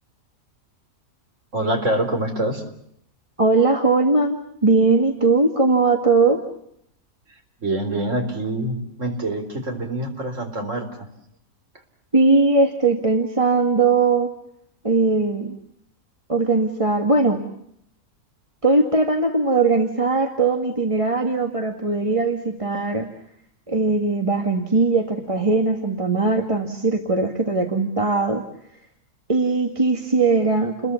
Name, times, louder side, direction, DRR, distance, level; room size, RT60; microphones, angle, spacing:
voice 1, 1.5-2.6 7.6-11.1, right 1 dB, 60° right, 5 dB, 4.4 m, -25 dB
voice 2, 3.4-6.4 12.1-14.3 14.8-15.6 16.3-17.4 18.6-23.1 23.7-28.4 29.3-30.9, right 3 dB, 25° right, 4 dB, 1.9 m, -20 dB
30.0 x 21.5 x 7.1 m, 0.73 s
omnidirectional pair, 1.5 m